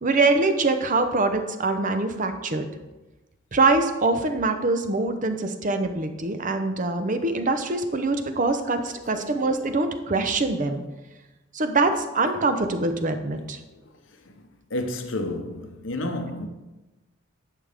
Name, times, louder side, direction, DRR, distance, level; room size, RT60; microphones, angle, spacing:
voice 1, 0.0-2.7 3.5-10.8 11.5-13.6, right 3 dB, 40° right, 0.8 m, -24 dB
voice 2, 14.7-16.5, left 1 dB, 70° left, 0.9 m, -30 dB
10.5 x 6.6 x 3.5 m
head